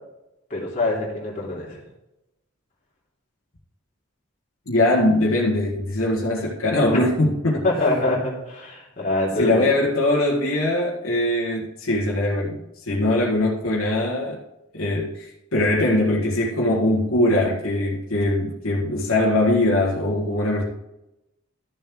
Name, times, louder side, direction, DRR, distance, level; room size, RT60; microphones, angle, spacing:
voice 1, 0.5-1.8 7.6-9.6, left 2 dB, 35° left, -4 dB, 3.0 m, -24 dB
voice 2, 4.7-7.6 9.4-12.6 12.9-14.4 14.7-20.6, left 1 dB, 90° left, -5 dB, 1.7 m, -21 dB
13.0 x 7.2 x 3.1 m, 0.92 s
head